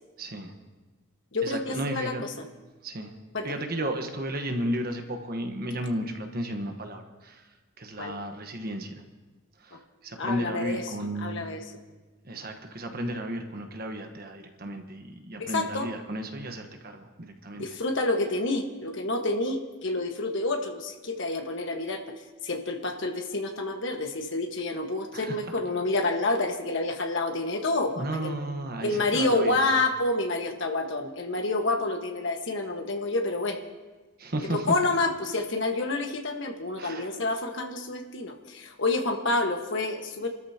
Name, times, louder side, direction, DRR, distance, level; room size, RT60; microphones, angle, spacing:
voice 1, 0.2-0.5 1.4-2.2 2.8-3.1 3.4-7.4 7.8-9.0 9.6-9.8 10.0-11.5 12.2-17.6 25.1-25.4 28.0-29.6 34.2-34.7 36.8-37.1, right 1 dB, 45° right, 5 dB, 1.2 m, -33 dB
voice 2, 1.3-2.3 3.3-3.6 8.0-8.1 9.7-9.8 10.2-10.8 11.2-11.6 15.4-15.9 17.5-22.1 22.4-28.3 28.8-33.6 34.4-40.3, left 2 dB, 60° left, 4 dB, 1.5 m, -28 dB
28.5 x 13.5 x 2.9 m, 1.2 s
head